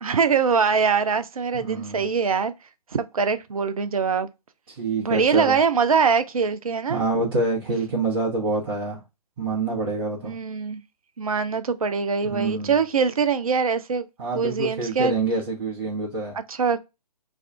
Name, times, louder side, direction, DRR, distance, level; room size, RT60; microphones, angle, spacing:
voice 1, 0.0-2.5 2.9-4.3 5.0-7.0 10.2-10.8 11.2-14.1 14.3-15.2 16.3-16.8, right 5 dB, 60° right, 0.5 m, -23 dB
voice 2, 1.5-2.1 4.8-5.6 6.9-9.0 9.4-10.3 12.2-12.8 14.2-16.3, right 3 dB, 35° right, 0.9 m, -26 dB
2.6 x 2.3 x 3.3 m
figure-of-eight pair, 135°, 21 cm